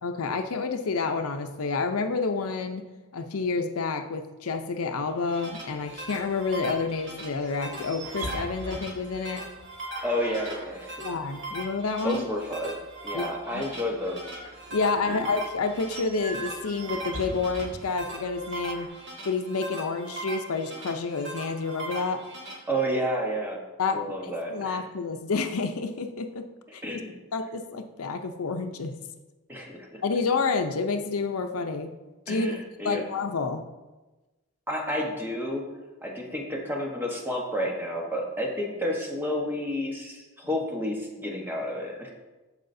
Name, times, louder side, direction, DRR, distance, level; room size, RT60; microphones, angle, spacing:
voice 1, 0.0-2.9 3.1-9.4 11.0-12.2 13.1-13.6 14.7-18.9 19.2-22.2 23.8-26.4 26.7-26.8 27.3-29.0 30.0-31.9 32.3-32.5 32.8-33.6, left 4 dB, 80° left, 6 dB, 0.6 m, -29 dB
sound 1, 5.1-22.5, right 2 dB, 55° right, 2.3 m, -40 dB
sound 2, 5.5-18.9, right 1 dB, 70° right, 1.6 m, -43 dB
voice 2, 10.0-11.0 12.0-12.8 13.0-14.3 15.1-15.2 22.7-23.6 23.9-24.8 26.8-27.2 29.5-30.0 32.3-33.1 34.7-35.7 36.0-42.1, equal, 10° right, -1 dB, 1.1 m, -30 dB
14.5 x 4.8 x 2.7 m, 1.1 s
head